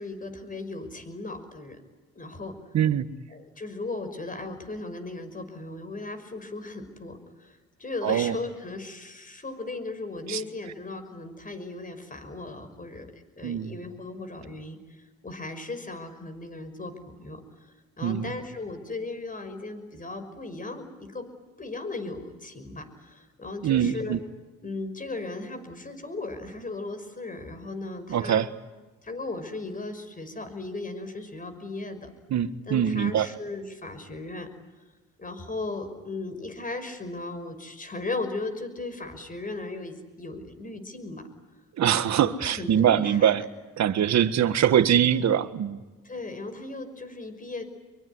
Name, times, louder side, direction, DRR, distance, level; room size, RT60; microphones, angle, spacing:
voice 1, 0.0-1.8 2.2-2.6 3.3-17.4 18.0-21.3 21.6-24.2 24.6-28.5 29.0-32.1 32.7-34.5 35.2-41.2 42.2-43.3 46.0-47.6, left 2 dB, 25° left, 5.7 m, -37 dB
voice 2, 2.7-3.1 8.0-8.3 10.3-10.4 13.4-13.7 18.0-18.3 23.6-24.2 28.1-28.5 32.3-33.3 41.8-43.4 43.8-45.8, right 9 dB, 65° right, 1.6 m, -23 dB
25.0 x 23.5 x 9.7 m
cardioid pair, 90°, 30 cm